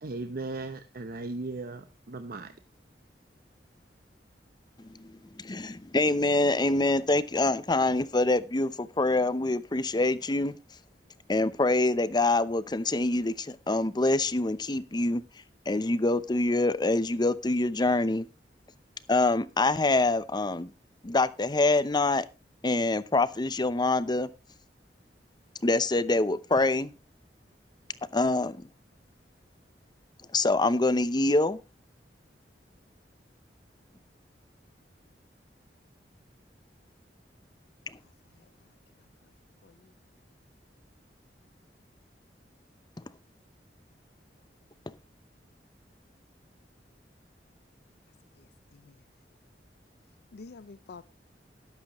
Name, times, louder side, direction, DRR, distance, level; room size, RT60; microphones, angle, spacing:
voice 1, 0.0-2.5, right 2 dB, 55° right, 0.8 m, -37 dB
voice 2, 5.3-10.5 11.3-15.2 15.7-18.3 19.1-20.7 21.0-22.3 22.6-24.3 25.6-26.9 28.1-28.6 30.3-31.6, left 2 dB, 25° left, 0.7 m, -25 dB
voice 3, 50.3-51.0, left 4 dB, 65° left, 0.5 m, -47 dB
13.0 x 11.5 x 3.1 m
head